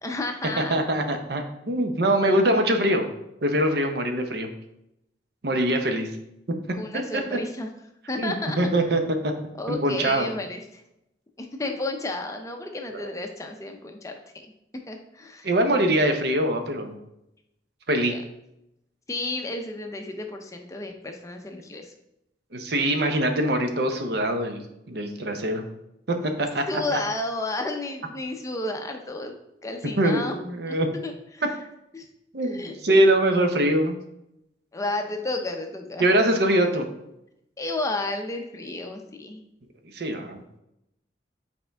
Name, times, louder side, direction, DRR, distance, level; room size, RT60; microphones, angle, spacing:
voice 1, 0.0-0.8 6.7-7.7 8.1-8.6 9.6-10.8 11.4-14.1 14.9-15.5 18.0-18.2 19.1-21.9 26.7-29.3 29.6-30.4 30.7-30.8 31.0-31.4 31.9-32.1 32.4-32.7 34.7-36.1 37.6-39.4, left 2 dB, 15° left, 4 dB, 0.5 m, -32 dB
voice 2, 0.6-3.1 3.4-4.5 5.4-6.1 6.9-7.2 8.2-9.3 9.7-10.3 12.9-13.1 15.4-16.9 17.9-18.2 22.5-25.7 26.1-26.6 30.0-30.9 32.3-34.0 36.0-36.9 39.9-40.4, right 1 dB, 60° right, 5 dB, 0.7 m, -23 dB
6.7 x 4.4 x 3.4 m, 0.85 s
head